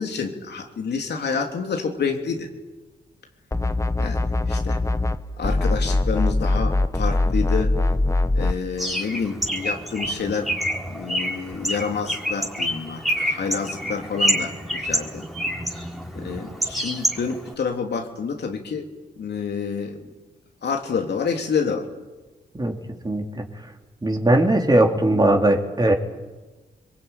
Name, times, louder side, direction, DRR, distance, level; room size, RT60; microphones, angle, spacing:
voice 1, 0.0-2.5 4.0-4.8 5.4-7.8 8.3-10.5 10.8-15.2 16.1-18.9 19.2-20.1 20.6-21.9, left 5 dB, 75° left, 3 dB, 3.3 m, -28 dB
sound 1, 3.5-5.2 5.4-8.6, left 2 dB, 15° left, 1.2 m, -22 dB
Bird, 8.8-17.5, equal, ahead, 4.2 m, -27 dB
voice 2, 23.0-23.4 24.0-25.9, right 1 dB, 25° right, 2 dB, 3.9 m, -19 dB
26.0 x 22.5 x 9.2 m, 1.2 s
cardioid pair, 70°, 17 cm